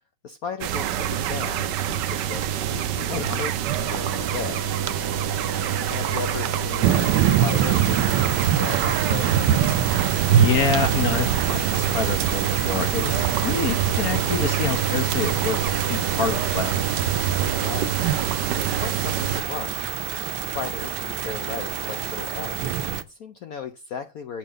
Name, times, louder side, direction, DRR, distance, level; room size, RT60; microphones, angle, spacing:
voice 1, 0.2-4.6 5.9-9.5 17.6-18.1 18.5-20.0 20.5-24.4, left 6 dB, 70° left, 9 dB, 0.8 m, -36 dB
sound 1, 0.6-19.4, right 9 dB, 65° right, 1.2 m, -25 dB
voice 2, 3.1-3.4 10.3-16.7, left 6 dB, 45° left, 8 dB, 1.6 m, -27 dB
sound 2, 3.8-17.8, right 3 dB, 30° right, 0.4 m, -37 dB
sound 3, 6.8-23.0, right 9 dB, 80° right, 1.5 m, -26 dB
8.1 x 5.6 x 6.5 m, 0.28 s
omnidirectional pair, 2.3 m